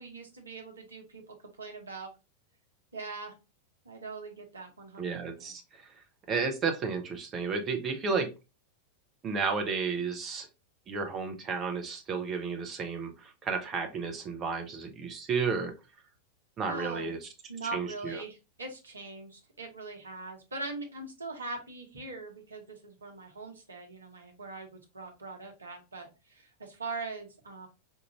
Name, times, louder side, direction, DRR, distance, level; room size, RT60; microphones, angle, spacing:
voice 1, 0.0-2.1 2.9-3.3 3.8-5.1 5.4-5.5 16.6-17.1 17.5-27.7, right 3 dB, 75° right, 3 dB, 0.9 m, -41 dB
voice 2, 5.0-5.9 6.3-8.3 9.2-10.5 10.9-15.7 16.6-17.3 17.7-18.2, right 5 dB, 25° right, 4 dB, 0.7 m, -32 dB
4.5 x 2.5 x 2.9 m, 0.27 s
figure-of-eight pair, 90°, 0 cm